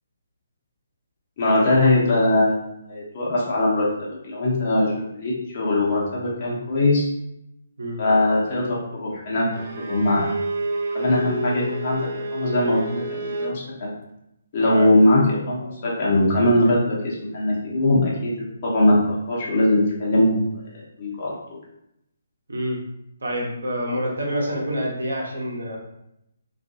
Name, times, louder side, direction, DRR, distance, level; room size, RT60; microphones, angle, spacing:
voice 1, 1.4-7.1 8.0-9.5 9.8-10.3 10.9-13.9 14.5-18.3 18.6-20.6 21.0-21.6, left 1 dB, 40° left, -4 dB, 0.8 m, -21 dB
Bowed string instrument, 9.5-13.6, right 2 dB, 45° right, 0.4 m, -30 dB
voice 2, 22.5-22.8 23.2-25.8, equal, 65° right, -2 dB, 0.7 m, -27 dB
2.4 x 2.2 x 2.7 m, 0.81 s
figure-of-eight pair, 135°, 0 cm